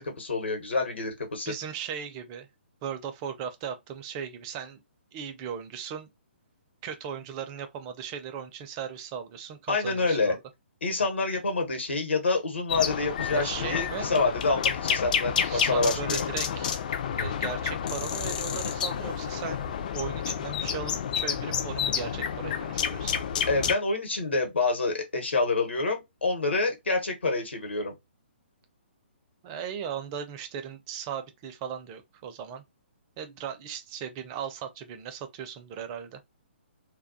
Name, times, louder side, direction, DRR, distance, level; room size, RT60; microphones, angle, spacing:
voice 1, 0.0-1.5 9.7-10.3 10.8-16.2 23.5-27.9, left 3 dB, 70° left, 1.0 m, -27 dB
voice 2, 1.5-2.5 2.8-4.8 5.1-6.1 6.8-10.4 13.3-14.1 15.4-16.7 17.1-19.7 19.9-23.2 29.4-32.6 33.2-36.4, right 8 dB, 25° right, 0.4 m, -37 dB
sound 1, 12.7-23.7, left 8 dB, 45° left, 0.4 m, -30 dB
2.2 x 2.2 x 2.6 m
figure-of-eight pair, 130°, 6 cm